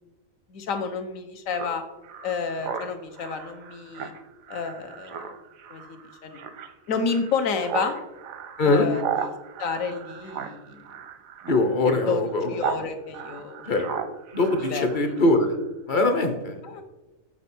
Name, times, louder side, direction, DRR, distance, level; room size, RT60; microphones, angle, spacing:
voice 1, 0.5-1.8 2.2-4.1 4.5-5.2 5.7-6.4 6.9-8.0 8.6-9.3 9.6-10.8 11.8-12.2 12.5-13.7 14.6-15.2 16.6-16.8, left 5 dB, 75° left, 7 dB, 1.2 m, -30 dB
Speech synthesizer, 1.5-12.8 13.1-15.3, right 7 dB, 85° right, 1.1 m, -36 dB
voice 2, 11.5-12.6 13.7-13.9 14.3-15.6 15.9-16.6, left 2 dB, 45° left, 7 dB, 0.8 m, -22 dB
7.4 x 4.4 x 4.2 m, 1.1 s
omnidirectional pair, 1.4 m